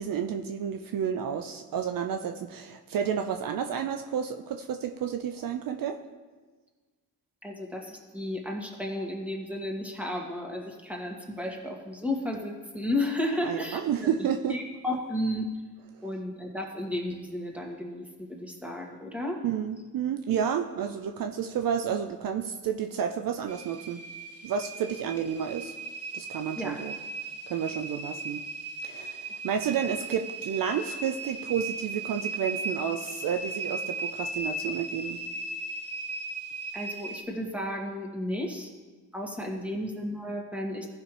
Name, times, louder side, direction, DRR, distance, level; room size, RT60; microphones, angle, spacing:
voice 1, 0.0-6.0 13.4-14.6 19.4-24.0 24.4-25.7 26.1-26.9 27.5-28.4 28.8-35.2 39.6-39.8, right 8 dB, 60° right, 6 dB, 0.6 m, -31 dB
voice 2, 7.4-15.5 16.0-19.4 26.6-26.8 36.7-38.7 39.1-40.9, left 1 dB, 5° right, 0 dB, 2.1 m, -33 dB
sound 1, 23.5-37.2, right 3 dB, 40° right, 1.4 m, -37 dB
14.5 x 5.8 x 3.4 m, 1.4 s
supercardioid pair, 50°, 38 cm